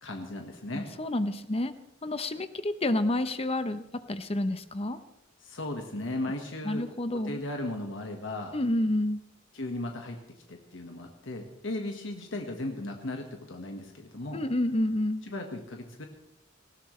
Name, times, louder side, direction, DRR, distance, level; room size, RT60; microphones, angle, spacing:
voice 1, 0.0-0.9 5.4-6.8 7.1-8.5 9.5-10.2 10.5-14.4 15.2-16.0, left 1 dB, 70° left, 3 dB, 1.6 m, -36 dB
voice 2, 0.7-1.7 2.0-5.0 6.6-7.4 8.5-9.2 14.3-15.2, left 1 dB, 30° left, 11 dB, 0.8 m, -29 dB
19.5 x 16.0 x 3.3 m, 0.89 s
head